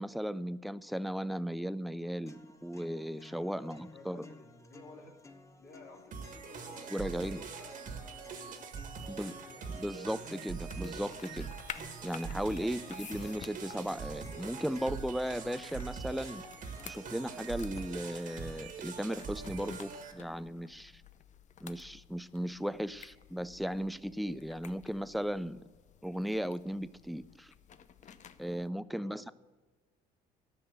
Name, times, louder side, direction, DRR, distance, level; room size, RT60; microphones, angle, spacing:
voice 1, 0.0-4.3 6.9-7.4 9.1-9.3 9.7-11.5 12.0-16.4 16.8-21.0 21.6-25.6 26.0-27.5 28.4-29.3, equal, ahead, 16 dB, 0.3 m, -36 dB
sound 1, 2.3-18.3, left 3 dB, 15° left, 0.9 m, -55 dB
voice 2, 3.5-9.8 12.7-13.1 28.9-29.3, left 2 dB, 70° left, -2 dB, 3.0 m, -55 dB
sound 2, 6.1-20.1, right 6 dB, 55° right, 1.6 m, -43 dB
sound 3, 10.6-28.7, left 8 dB, 45° left, 0.7 m, -53 dB
13.5 x 6.1 x 8.0 m, 1.3 s
cardioid pair, 110°, 17 cm